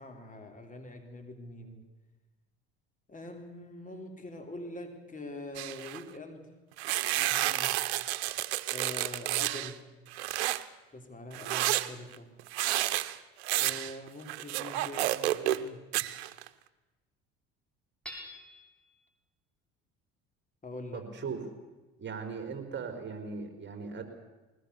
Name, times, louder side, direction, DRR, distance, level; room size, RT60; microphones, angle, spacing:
voice 1, 0.0-1.8 3.1-6.5 7.2-7.8 8.7-9.9 10.9-12.3 13.6-15.9 20.6-21.1, left 2 dB, 25° left, 5 dB, 3.6 m, -44 dB
sound 1, 5.5-6.0 6.8-9.7 10.1-10.6 11.3-15.7 15.9-16.5, right 16 dB, 90° right, 0.9 m, -30 dB
Hammer / Chink clink, 18.0-18.8, equal, 5° left, 6.4 m, -45 dB
voice 2, 20.9-21.4 22.0-24.0, right 5 dB, 35° right, 6 dB, 4.3 m, -38 dB
21.0 x 20.0 x 7.0 m, 1.1 s
supercardioid pair, 80°, 32 cm